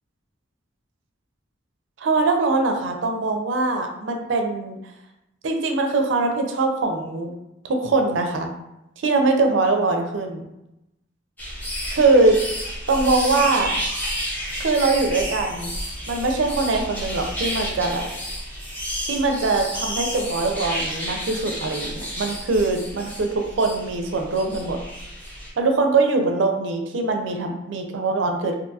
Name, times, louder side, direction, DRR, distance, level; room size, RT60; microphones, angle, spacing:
voice 1, 2.0-4.8 5.4-7.3 7.6-8.5 9.0-10.5 11.9-12.4 12.9-13.7 14.6-15.8 16.1-18.1 19.1-24.8 25.6-28.6, right 3 dB, 70° right, 4 dB, 0.4 m, -22 dB
sound 1, 11.4-25.5, equal, 10° left, 0.6 m, -31 dB
2.5 x 2.3 x 2.6 m, 0.90 s
head